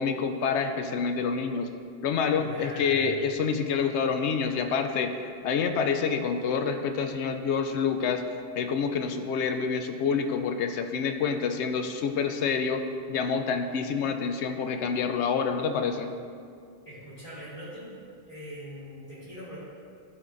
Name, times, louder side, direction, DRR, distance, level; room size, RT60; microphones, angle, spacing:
voice 1, 0.0-1.7 2.0-8.2 8.6-12.8 13.1-16.1, left 6 dB, 85° left, 6 dB, 0.9 m, -27 dB
voice 2, 2.3-3.1 16.8-17.9 18.2-19.6, equal, 30° left, -10 dB, 1.6 m, -42 dB
12.5 x 4.3 x 2.6 m, 2.3 s
omnidirectional pair, 1.1 m